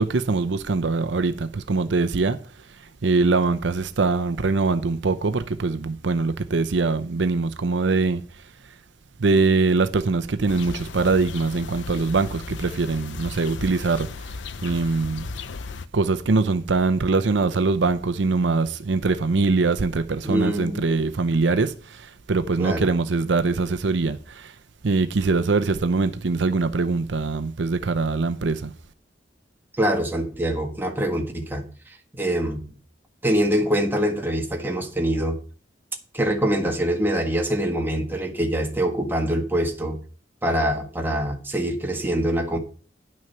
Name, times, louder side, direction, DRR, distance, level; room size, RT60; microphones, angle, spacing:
voice 1, 0.0-2.4 2.8-8.2 9.2-14.3 14.6-15.3 15.9-24.5 24.8-28.7, right 3 dB, 75° right, 0.6 m, -23 dB
sound 1, 10.5-15.9, left 4 dB, 75° left, 0.6 m, -36 dB
voice 2, 20.2-20.8 22.6-22.9 29.8-31.6 32.1-32.8 33.2-35.4 36.1-40.0 40.4-42.6, right 1 dB, 10° right, 1.6 m, -24 dB
10.5 x 6.3 x 5.7 m
head